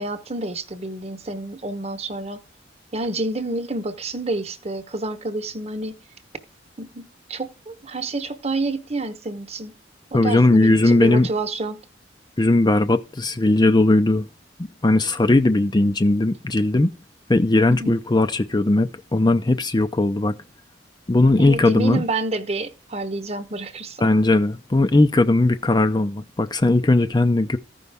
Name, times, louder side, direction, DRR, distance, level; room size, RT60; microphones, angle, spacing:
voice 1, 0.0-2.4 2.9-5.9 6.8-9.7 10.1-11.8 17.7-18.0 21.4-24.0, right 2 dB, 35° right, 1.0 m, -29 dB
voice 2, 10.1-11.3 12.4-14.3 14.8-16.9 17.3-20.4 21.1-22.0 24.0-27.6, left 2 dB, 20° left, 0.5 m, -18 dB
15.0 x 5.4 x 3.4 m
head